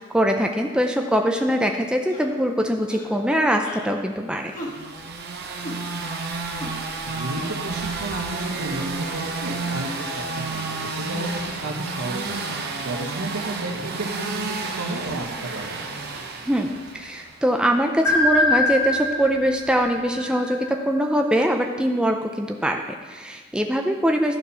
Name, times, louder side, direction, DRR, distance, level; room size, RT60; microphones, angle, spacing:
voice 1, 0.1-4.5 16.5-24.4, equal, 5° right, 3 dB, 0.5 m, -22 dB
sound 1, 2.1-2.3 2.9-3.2 3.6-3.9 4.5-4.8 5.6-5.8 6.6-6.7, left 1 dB, 35° left, 1.6 m, -36 dB
sound 2, 4.6-17.5, right 3 dB, 45° right, 0.8 m, -31 dB
voice 2, 7.1-12.4 12.8-15.8, right 2 dB, 90° right, 1 dB, 1.4 m, -32 dB
sound 3, 18.0-21.0, left 2 dB, 90° left, 1.5 m, -23 dB
12.0 x 4.4 x 5.5 m, 1.4 s
head